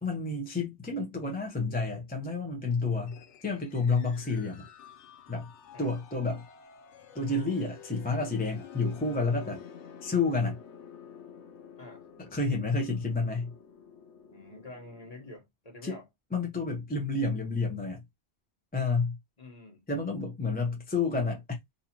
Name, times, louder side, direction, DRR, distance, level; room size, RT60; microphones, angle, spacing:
voice 1, 0.0-4.6 5.3-5.5 5.8-6.4 7.1-9.6 10.0-10.6 12.2-13.5 15.8-16.0 16.3-18.0 18.7-19.2 19.9-21.6, left 3 dB, 10° left, 0.7 m, -30 dB
sound 1, 3.1-15.4, left 7 dB, 85° left, 1.0 m, -51 dB
voice 2, 14.3-16.1 19.4-19.8, left 2 dB, 35° left, 1.4 m, -47 dB
4.0 x 2.7 x 2.9 m
omnidirectional pair, 1.2 m